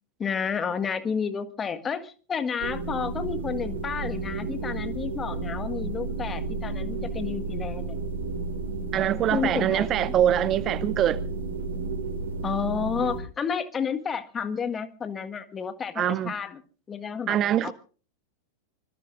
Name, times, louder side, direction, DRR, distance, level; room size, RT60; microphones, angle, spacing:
voice 1, 0.2-8.0 9.3-9.9 12.4-16.6 16.9-17.7, left 6 dB, 20° left, 1.6 m, -31 dB
sound 1, 2.6-13.2, right 3 dB, 60° right, 2.6 m, -32 dB
voice 2, 8.9-11.2 16.0-16.3 17.3-17.7, right 11 dB, 30° right, 0.7 m, -24 dB
25.0 x 20.5 x 2.5 m
figure-of-eight pair, 90°, 0 cm